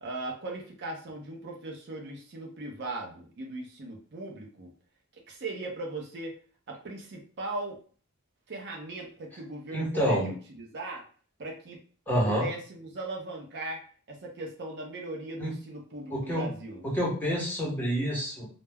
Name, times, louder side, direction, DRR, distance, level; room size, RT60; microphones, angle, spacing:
voice 1, 0.0-4.7 5.1-6.3 6.7-7.8 8.5-11.0 11.4-11.8 12.2-16.8, right 2 dB, 55° right, 0 dB, 0.5 m, -39 dB
voice 2, 9.7-10.3 12.1-12.4 15.4-15.5 16.1-16.5 16.8-18.5, equal, 10° left, -5 dB, 0.8 m, -28 dB
2.2 x 2.0 x 3.3 m, 0.42 s
head